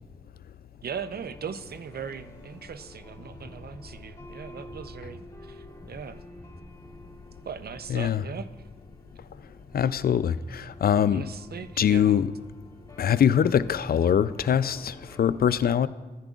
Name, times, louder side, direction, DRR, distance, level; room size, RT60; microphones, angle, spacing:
voice 1, 0.8-6.2 7.4-8.5 11.1-12.2, right 6 dB, 60° right, 0.6 m, -39 dB
sound 1, 0.9-15.2, left 1 dB, 20° left, 2.2 m, -48 dB
voice 2, 7.9-8.2 9.7-11.2 11.8-12.3 13.0-15.9, left 8 dB, 60° left, 0.4 m, -23 dB
13.5 x 10.5 x 2.4 m
cardioid pair, 45°, 18 cm